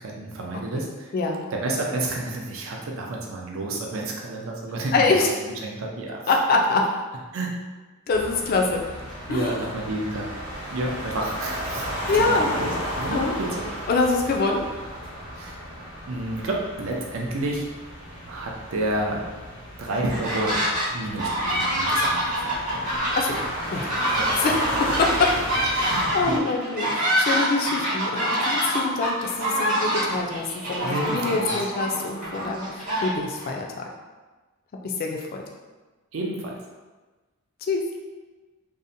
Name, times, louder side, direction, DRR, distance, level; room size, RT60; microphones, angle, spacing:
voice 1, 0.0-1.1 1.5-4.9 5.6-6.2 7.3-7.6 9.3-10.3 10.7-11.9 12.1-13.6 15.3-15.6 16.1-17.6 18.2-19.2 19.8-20.6 20.9-22.9 24.1-24.5 25.9-26.5 30.8-31.5 36.1-36.6, right 1 dB, 65° right, -1 dB, 0.4 m, -30 dB
voice 2, 1.1-1.5 4.9-5.3 6.3-6.9 8.1-8.8 9.3-9.6 12.1-12.5 13.1-13.3 13.9-14.7 23.2-23.4 23.7-23.9 24.4-25.4 25.7-33.7 34.8-35.4 37.6-37.8, left 3 dB, 40° left, 0 dB, 0.3 m, -24 dB
sound 1, 8.1-26.4, equal, 90° left, 0.8 m, -34 dB
sound 2, 19.9-20.9 21.2-33.5, equal, 40° right, 0.8 m, -26 dB
2.6 x 2.1 x 2.5 m, 1.3 s
head